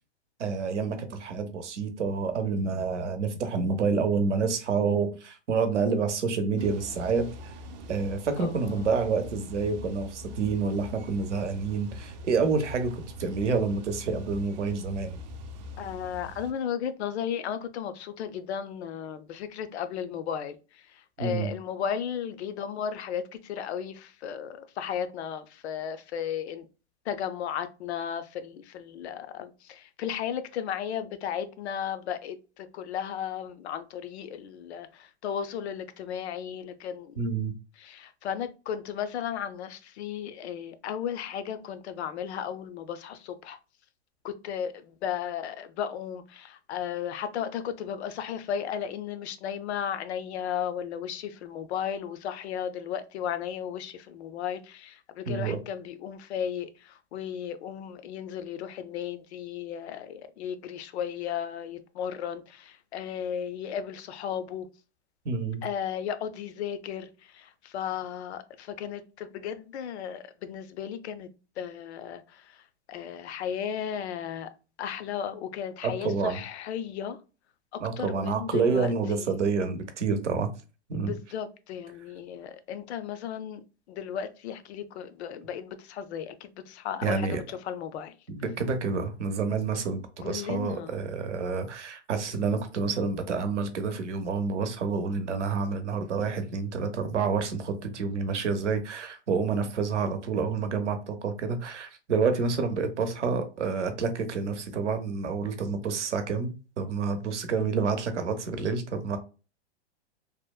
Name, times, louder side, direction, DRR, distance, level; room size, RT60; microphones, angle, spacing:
voice 1, 0.4-7.3 7.9-15.2 21.2-21.5 37.2-37.5 55.3-55.6 65.3-65.6 75.8-76.4 77.8-80.5 80.9-81.1 87.0-87.4 88.3-109.2, right 5 dB, 90° right, 0.7 m, -28 dB
sound 1, 6.6-16.5, left 1 dB, 40° right, 0.4 m, -43 dB
voice 2, 8.4-8.9 15.8-26.7 27.0-37.2 37.8-43.6 44.2-64.7 65.6-71.3 71.6-74.5 74.8-77.2 77.7-79.3 81.0-88.2 90.2-91.0, left 8 dB, 70° left, 0.5 m, -35 dB
2.8 x 2.0 x 2.2 m
hypercardioid pair, 120°, 34 cm